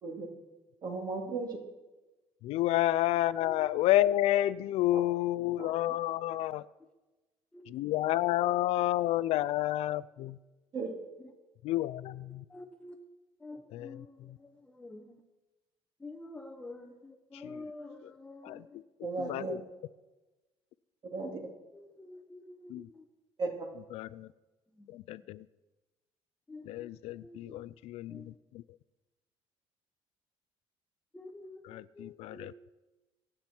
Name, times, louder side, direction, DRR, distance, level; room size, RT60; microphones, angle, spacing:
voice 1, 0.8-1.6 4.9-5.0 5.6-5.7 10.7-10.9 19.0-19.5 21.1-21.4 23.4-23.5, right 3 dB, 40° right, 2.8 m, -35 dB
voice 2, 2.4-6.7 7.7-10.4 11.6-12.4 13.7-14.4 17.3-17.7 18.0-18.1 18.4-18.8 19.2-19.6 22.7-22.9 23.9-24.3 24.9-25.5 26.6-28.6 31.6-32.5, left 14 dB, 70° left, 0.4 m, -30 dB
voice 3, 12.5-13.0 13.4-15.2 16.0-18.8 21.7-23.0 24.8-24.9 26.5-26.9 27.2-27.6 28.1-28.3 31.1-32.5, left 2 dB, 10° left, 1.0 m, -48 dB
26.0 x 8.8 x 4.5 m
cardioid pair, 165°, 11 cm